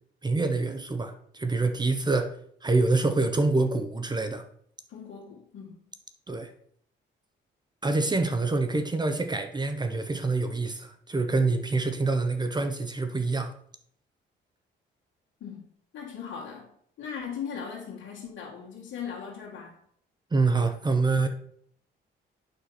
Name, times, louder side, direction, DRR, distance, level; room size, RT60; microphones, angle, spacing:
voice 1, 0.2-2.3 2.6-4.4 6.3-6.5 7.8-13.5 20.3-21.3, right 3 dB, 20° right, 8 dB, 0.8 m, -26 dB
voice 2, 4.9-5.7 15.4-15.7 15.9-16.7 17.0-19.8, left 7 dB, 75° left, -7 dB, 2.0 m, -38 dB
8.4 x 5.8 x 4.2 m, 0.64 s
cardioid pair, 90°, 20 cm